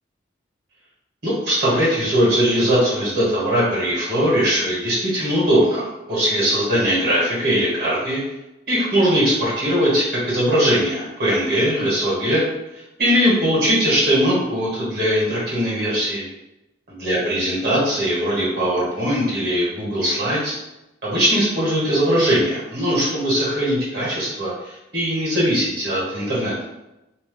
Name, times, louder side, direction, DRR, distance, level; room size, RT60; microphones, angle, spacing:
voice 1, 1.2-8.2 8.7-12.4 13.0-16.2 17.0-20.5 21.0-26.5, equal, 50° right, -7 dB, 1.3 m, -20 dB
2.7 x 2.2 x 3.6 m, 0.94 s
head